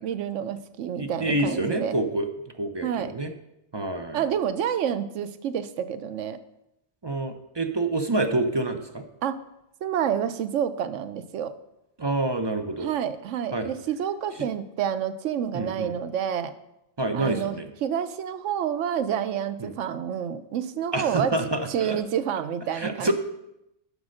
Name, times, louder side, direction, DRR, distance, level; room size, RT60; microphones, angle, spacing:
voice 1, 0.0-1.9 2.8-3.1 4.1-6.4 9.2-9.4 9.8-11.6 12.8-16.5 17.1-21.4 21.7-23.1, right 9 dB, 90° right, 12 dB, 1.0 m, -28 dB
voice 2, 1.0-2.3 2.6-3.3 3.7-4.2 7.0-9.0 12.0-12.9 13.5-13.8 15.5-15.9 17.0-17.7 19.6-19.7 20.9-22.0 22.7-23.1, right 2 dB, 30° right, 6 dB, 0.5 m, -27 dB
8.0 x 5.3 x 6.4 m, 0.85 s
omnidirectional pair, 1.2 m